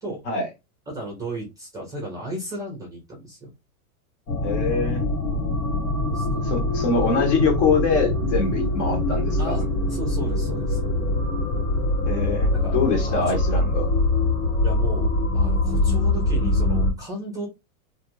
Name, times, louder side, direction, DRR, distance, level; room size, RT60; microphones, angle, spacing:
voice 1, 0.9-3.5 6.1-6.5 9.4-10.9 12.5-12.8 13.1-13.4 14.6-17.5, right 1 dB, 10° right, 0.5 m, -34 dB
sound 1, 4.3-16.9, left 2 dB, 80° left, 1.3 m, -23 dB
voice 2, 4.4-5.0 6.4-9.6 12.1-13.9, left 4 dB, 50° left, 1.2 m, -24 dB
2.5 x 2.3 x 3.0 m
supercardioid pair, 150°, 42 cm